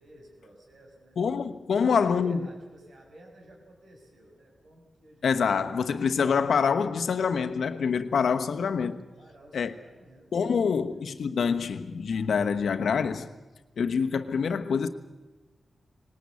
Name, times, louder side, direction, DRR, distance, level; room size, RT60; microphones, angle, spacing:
voice 1, 0.0-1.2 1.7-5.6 9.2-11.1, right 1 dB, 75° right, 6.3 m, -53 dB
voice 2, 1.2-2.5 5.2-9.0 9.5-9.7 10.3-13.3 13.8-14.9, left 6 dB, 80° left, 1.1 m, -26 dB
20.0 x 18.5 x 8.4 m
cardioid pair, 50°, 0 cm